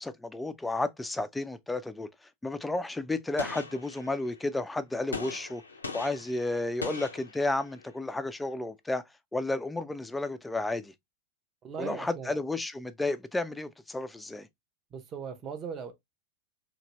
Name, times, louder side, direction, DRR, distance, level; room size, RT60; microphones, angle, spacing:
voice 1, 0.0-5.6 5.9-9.0 9.3-10.9 11.8-14.5, left 2 dB, 5° left, 0.3 m, -32 dB
Gunshot gunfire, 3.4-4.4 5.1-7.9, left 4 dB, 75° left, 0.5 m, -41 dB
voice 2, 11.6-12.4 14.9-15.9, right 6 dB, 30° right, 0.7 m, -39 dB
2.8 x 2.7 x 2.9 m
figure-of-eight pair, 90°, 0 cm